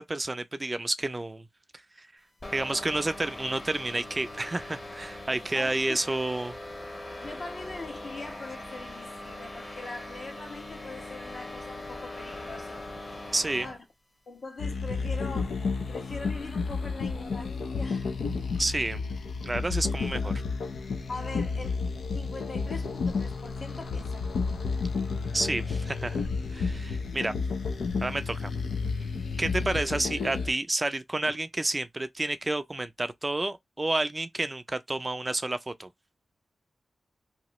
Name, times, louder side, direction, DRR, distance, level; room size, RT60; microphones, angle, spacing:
voice 1, 0.0-1.5 2.0-2.1 2.5-6.5 13.3-13.7 18.6-19.0 19.4-20.3 25.3-27.4 28.0-28.5 29.4-35.9, right 2 dB, 25° right, 0.4 m, -30 dB
sound 1, 2.4-13.8, left 1 dB, 35° left, 1.1 m, -41 dB
voice 2, 5.5-6.0 7.2-12.8 13.6-13.8 14.3-15.6 15.9-18.1 21.1-21.8 22.1-24.4 31.3-31.4, left 3 dB, 65° left, 1.3 m, -42 dB
sound 2, 14.6-30.5, left 4 dB, 85° left, 0.5 m, -31 dB
2.9 x 2.3 x 2.9 m
cardioid pair, 75°, 0 cm